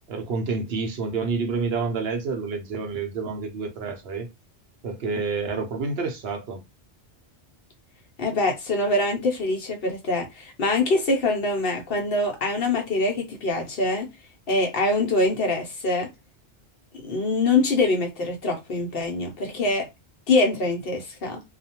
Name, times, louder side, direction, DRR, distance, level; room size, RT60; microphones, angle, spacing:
voice 1, 0.1-4.3 4.8-6.6, right 4 dB, 65° right, 0.8 m, -28 dB
voice 2, 8.2-14.1 14.5-16.1 17.0-19.9 20.3-21.4, left 2 dB, 60° left, 0.8 m, -24 dB
2.3 x 2.1 x 2.8 m
omnidirectional pair, 1.2 m